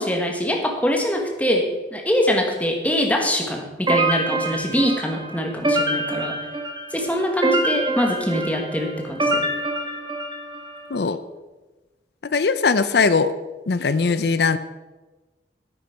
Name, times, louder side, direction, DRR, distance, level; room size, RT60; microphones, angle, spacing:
voice 1, 0.0-6.4 6.9-9.5, equal, 10° left, 2 dB, 1.4 m, -23 dB
sound 1, 3.9-10.8, right 1 dB, 25° right, 1.3 m, -25 dB
voice 2, 12.3-13.3 13.7-14.6, left 4 dB, 60° left, 13 dB, 0.5 m, -20 dB
9.4 x 8.5 x 5.8 m, 1.2 s
head